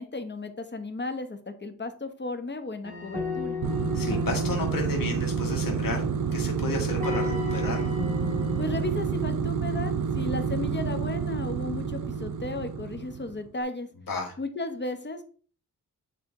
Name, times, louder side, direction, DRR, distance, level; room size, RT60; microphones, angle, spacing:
voice 1, 0.0-3.6 8.6-13.9 14.4-15.2, left 2 dB, 35° left, 8 dB, 1.0 m, -34 dB
sound 1, 2.8-9.5, left 3 dB, 25° right, 2.4 m, -35 dB
sound 2, 3.6-13.4, right 6 dB, 70° right, 0.7 m, -29 dB
voice 2, 3.9-6.1 6.3-7.9 14.1-14.4, left 2 dB, 85° left, 1 dB, 1.8 m, -32 dB
9.7 x 3.4 x 3.7 m, 0.43 s
wide cardioid pair, 115°, 33 cm